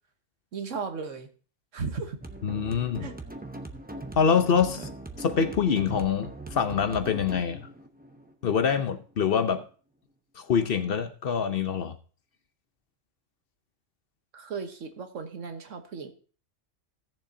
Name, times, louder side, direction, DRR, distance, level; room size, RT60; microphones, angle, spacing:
voice 1, 0.5-1.3 1.7-2.2 3.0-3.2 14.3-16.1, right 5 dB, 85° right, 1.5 m, -35 dB
sound 1, 2.2-9.2, right 2 dB, 10° right, 0.7 m, -41 dB
voice 2, 2.4-3.1 4.2-4.9 5.2-7.7 8.4-9.6 10.4-11.9, left 7 dB, 55° left, 0.9 m, -25 dB
17.0 x 7.0 x 2.7 m
omnidirectional pair, 1.3 m